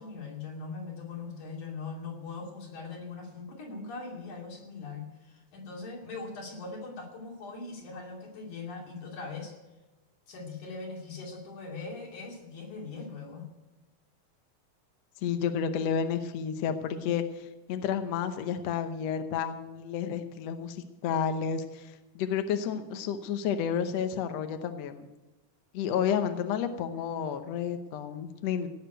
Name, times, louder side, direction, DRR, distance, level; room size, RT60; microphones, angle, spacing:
voice 1, 0.0-9.6 10.3-13.5 26.9-27.1, left 4 dB, 85° left, -1 dB, 4.2 m, -41 dB
voice 2, 15.2-25.1 25.7-28.7, left 7 dB, 70° left, 8 dB, 1.8 m, -31 dB
17.5 x 6.6 x 9.1 m, 1.1 s
omnidirectional pair, 3.4 m